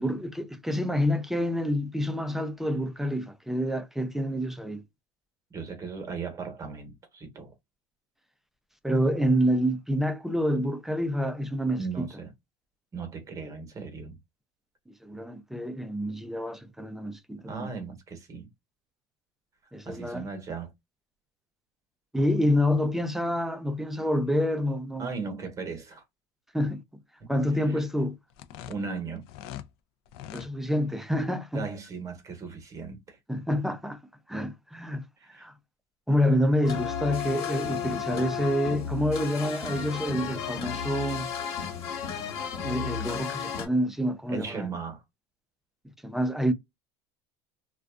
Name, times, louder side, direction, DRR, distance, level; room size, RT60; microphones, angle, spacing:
voice 1, 0.0-4.8 8.8-12.1 15.0-17.7 19.7-20.3 22.1-25.1 26.5-26.8 27.3-28.2 30.3-31.7 33.3-34.0 34.3-35.5 36.1-41.3 42.6-44.7 46.0-46.5, equal, 5° right, 0.3 m, -27 dB
voice 2, 5.5-7.5 11.8-12.3 12.9-14.2 17.5-18.5 19.8-20.7 25.0-26.0 27.7-27.8 28.7-29.2 31.5-33.2 35.2-35.5 44.3-45.0, right 5 dB, 25° right, 0.9 m, -37 dB
sound 1, 28.3-29.7 30.1-30.5, left 11 dB, 80° left, 0.4 m, -42 dB
sound 2, 36.6-43.7, left 7 dB, 45° left, 1.3 m, -33 dB
2.5 x 2.2 x 2.2 m
cardioid pair, 135°, 13 cm